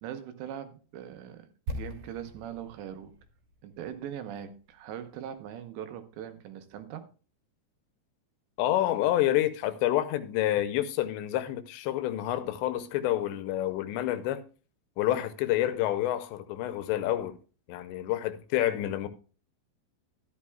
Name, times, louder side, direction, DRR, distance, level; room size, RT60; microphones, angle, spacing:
voice 1, 0.0-3.1 3.6-7.1, right 9 dB, 80° right, 3.1 m, -41 dB
sound 1, 1.7-5.6 5.9-6.0, equal, 55° right, 2.7 m, -42 dB
voice 2, 8.6-14.4 15.0-17.4 17.7-19.1, left 13 dB, 85° left, 2.9 m, -28 dB
13.0 x 11.0 x 2.2 m
omnidirectional pair, 5.1 m